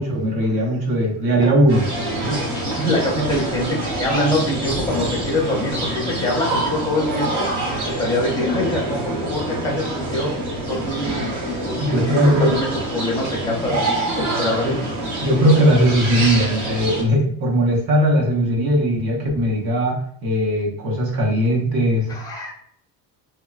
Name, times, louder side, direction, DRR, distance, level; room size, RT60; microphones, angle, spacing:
voice 1, 0.0-1.9 11.8-12.6 14.6-14.8 15.2-22.1, equal, 60° right, -1 dB, 0.8 m, -19 dB
sound 1, 1.7-17.0, right 1 dB, 85° right, 1.3 m, -26 dB
voice 2, 2.2-7.5 7.8-10.4 10.7-14.7 15.3-15.4 22.1-22.5, left 1 dB, 10° left, -3 dB, 0.5 m, -24 dB
2.9 x 2.2 x 2.3 m, 0.63 s
cardioid pair, 170°, 41 cm